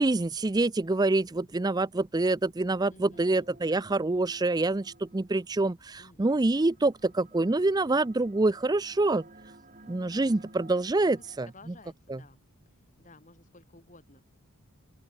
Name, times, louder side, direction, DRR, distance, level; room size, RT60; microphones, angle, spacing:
voice 1, 0.0-9.2 9.9-11.5 12.1-12.2, right 2 dB, 15° right, 0.4 m, -26 dB
voice 2, 2.9-3.5 6.0-6.5 11.1-12.4 13.0-14.2, left 2 dB, 35° left, 7.3 m, -54 dB
sound 1, 3.1-5.6 6.5-11.5, right 2 dB, 35° right, 3.0 m, -54 dB
open air
head